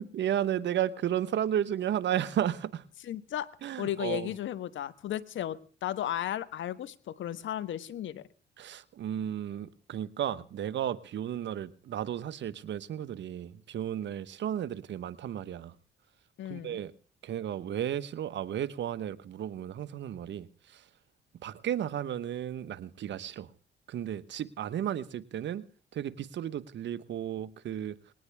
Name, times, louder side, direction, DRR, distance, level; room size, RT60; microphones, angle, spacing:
voice 1, 0.0-2.8 3.6-4.3 8.6-15.7 16.5-16.9 17.2-20.9 21.4-23.5 23.9-25.7 25.9-28.0, right 10 dB, 65° right, 1.2 m, -33 dB
voice 2, 3.0-3.5 3.8-8.3 16.4-16.8, left 11 dB, 75° left, 1.4 m, -35 dB
20.5 x 18.5 x 3.5 m
cardioid pair, 90°, 20 cm